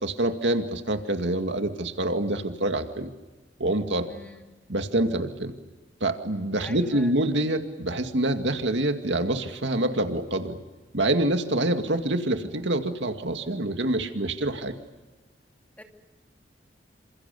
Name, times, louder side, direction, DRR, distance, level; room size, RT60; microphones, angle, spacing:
voice 1, 0.0-3.1 3.6-4.1 4.7-5.5 6.0-10.6 10.9-14.7, right 1 dB, 75° right, 6 dB, 2.2 m, -26 dB
voice 2, 4.1-4.4 6.6-7.1 15.8-15.9, left 1 dB, 10° left, 3 dB, 2.6 m, -43 dB
28.5 x 27.0 x 6.9 m, 1.2 s
head